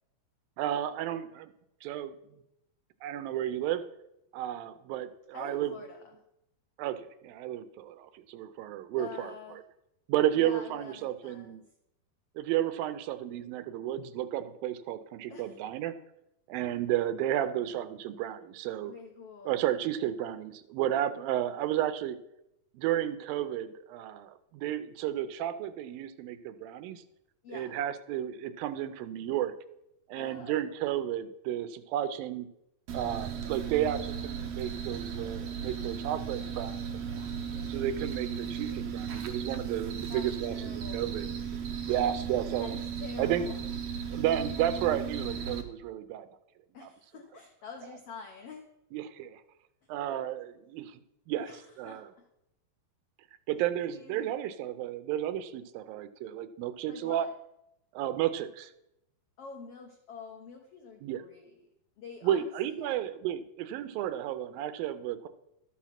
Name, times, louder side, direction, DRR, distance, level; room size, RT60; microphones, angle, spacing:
voice 1, 0.6-1.5 1.8-2.2 3.0-3.8 4.3-5.7 6.8-9.6 10.1-11.6 12.4-16.0 16.5-18.9 19.5-22.2 22.7-27.0 27.5-29.5 30.1-32.5 32.9-36.7 37.2-37.3 37.7-41.2 41.9-42.8 43.2-43.5 44.1-46.3 46.8-46.9 48.9-49.4 49.9-51.0 51.3-51.5 51.8-52.1 53.5-57.3 57.9-58.7 61.0-61.2 62.2-65.3, right 11 dB, 85° right, 11 dB, 2.5 m, -32 dB
voice 2, 5.3-6.1 9.0-9.6 10.3-11.6 15.3-15.6 18.8-19.7 27.4-27.8 30.1-30.7 40.1-41.2 41.9-42.0 42.6-43.6 46.7-48.7 51.4-52.3 53.9-54.4 56.9-57.3 59.4-61.6 62.0-63.1, left 5 dB, 90° left, 3 dB, 1.3 m, -47 dB
sound 1, 32.9-45.6, right 7 dB, 65° right, 1.6 m, -36 dB
12.5 x 6.1 x 5.8 m, 0.84 s
omnidirectional pair, 4.1 m